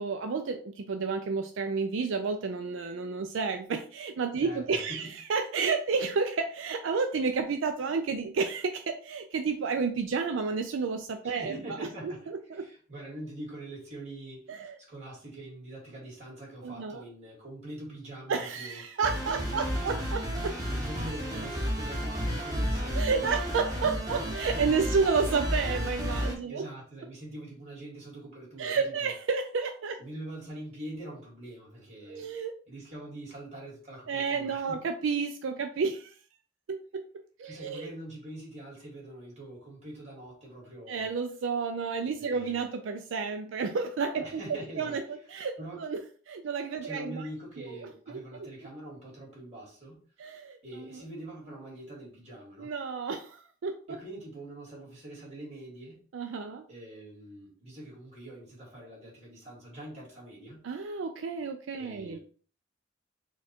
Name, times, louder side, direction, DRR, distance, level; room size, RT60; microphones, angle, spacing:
voice 1, 0.0-11.5 12.0-12.7 14.5-14.8 16.6-17.0 18.3-20.5 22.9-26.6 28.6-30.0 32.1-32.5 34.1-36.1 36.7-36.8 37.4-37.9 40.9-46.0 46.3-47.3 47.6-48.5 50.2-51.0 52.6-54.0 56.1-56.7 60.6-62.2, right 5 dB, 80° right, 0.4 m, -31 dB
voice 2, 4.4-5.1 11.2-18.8 19.3-19.9 20.7-23.5 24.6-25.1 26.5-29.1 30.0-32.3 32.7-34.8 37.4-41.1 42.2-42.6 44.2-45.0 45.6-45.8 46.8-50.0 50.6-52.7 53.9-56.0 56.7-60.6 61.8-62.2, right 1 dB, 35° right, 2.1 m, -44 dB
sound 1, 19.0-26.3, equal, 20° right, 0.9 m, -32 dB
4.4 x 2.3 x 4.3 m
head